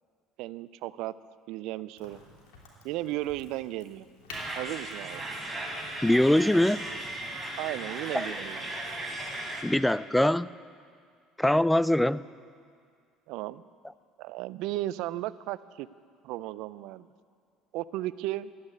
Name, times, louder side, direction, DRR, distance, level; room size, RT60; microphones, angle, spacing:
voice 1, 0.4-1.1 1.5-2.2 2.8-4.1 4.5-5.2 7.6-8.7 13.3-13.6 14.2-15.9 16.2-17.1 17.7-18.5, right 15 dB, 70° right, 17 dB, 0.4 m, -35 dB
Crack, 2.0-7.4, left 2 dB, 80° left, 3.2 m, -50 dB
sound 1, 4.3-9.6, right 1 dB, 15° right, 3.6 m, -37 dB
voice 2, 6.0-6.9 8.1-8.3 9.6-10.5 11.4-12.2, left 1 dB, 5° left, 18 dB, 0.3 m, -23 dB
13.5 x 9.6 x 9.6 m, 2.2 s
supercardioid pair, 80°, 0 cm